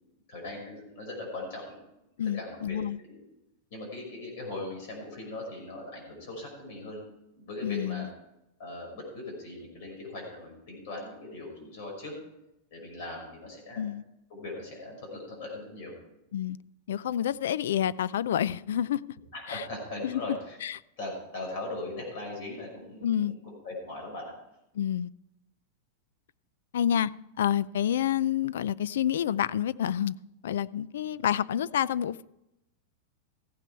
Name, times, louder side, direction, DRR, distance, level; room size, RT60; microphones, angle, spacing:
voice 1, 0.3-1.8 2.3-2.8 3.1-3.2 3.7-7.0 7.4-8.1 8.6-12.1 12.7-13.9 14.3-15.9 19.3-20.6 21.0-24.3, left 2 dB, 45° left, 0 dB, 5.6 m, -39 dB
voice 2, 2.2-3.0 7.6-8.1 13.7-14.0 16.3-16.6 16.9-19.0 19.5-19.6 20.0-20.2 20.6-20.8 23.0-23.3 24.8-25.1 26.7-27.1 27.4-30.1 30.4-32.2, left 10 dB, 85° left, 20 dB, 0.4 m, -28 dB
15.0 x 9.2 x 4.6 m, 0.88 s
supercardioid pair, 175°, 0 cm